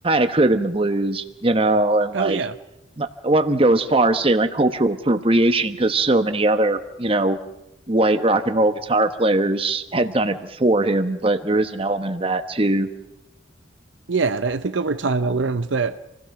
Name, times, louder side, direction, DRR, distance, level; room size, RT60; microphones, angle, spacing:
voice 1, 0.0-2.4 3.0-7.4 7.9-12.9, right 2 dB, 30° right, 9 dB, 1.1 m, -20 dB
voice 2, 2.1-2.6 14.1-16.0, right 4 dB, 70° right, 11 dB, 0.7 m, -23 dB
27.0 x 16.5 x 6.1 m, 0.93 s
head